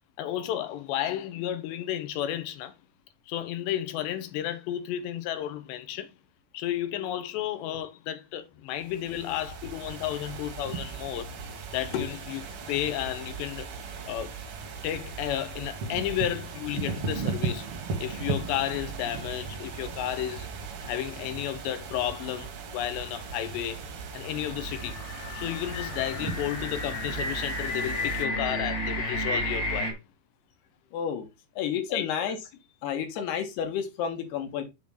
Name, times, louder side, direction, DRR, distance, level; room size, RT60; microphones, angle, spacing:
voice 1, 0.2-2.8 3.3-6.1 6.5-11.3 11.7-12.4 12.7-13.7 14.1-14.4 14.8-17.7 18.0-20.5 20.8-23.8 24.1-25.0 25.3-30.0 31.9-32.1, left 12 dB, 90° left, 3.2 m, -32 dB
sound 1, 8.7-28.2, right 5 dB, 70° right, 1.3 m, -37 dB
sound 2, 24.3-29.9, left 1 dB, 40° left, 2.8 m, -32 dB
voice 2, 30.9-31.3 31.6-32.4 32.8-34.6, left 8 dB, 75° left, 3.5 m, -30 dB
7.0 x 4.8 x 5.5 m
omnidirectional pair, 4.8 m